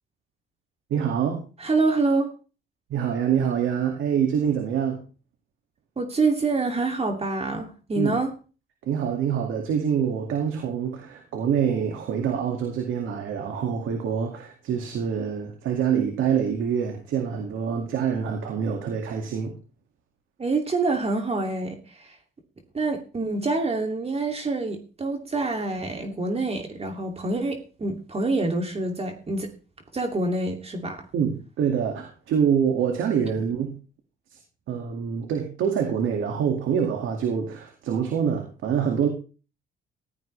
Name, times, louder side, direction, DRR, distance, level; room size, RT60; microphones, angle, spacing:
voice 1, 0.9-1.4 2.9-5.0 8.0-8.1 8.9-19.5 31.1-33.7 34.3-34.4 34.7-39.1, right 7 dB, 80° right, 3 dB, 2.2 m, -25 dB
voice 2, 1.6-2.3 6.0-8.3 20.4-22.2 22.7-29.5 29.9-31.1, right 3 dB, 30° right, 3 dB, 2.6 m, -26 dB
15.5 x 12.5 x 3.3 m, 0.35 s
cardioid pair, 90°, 20 cm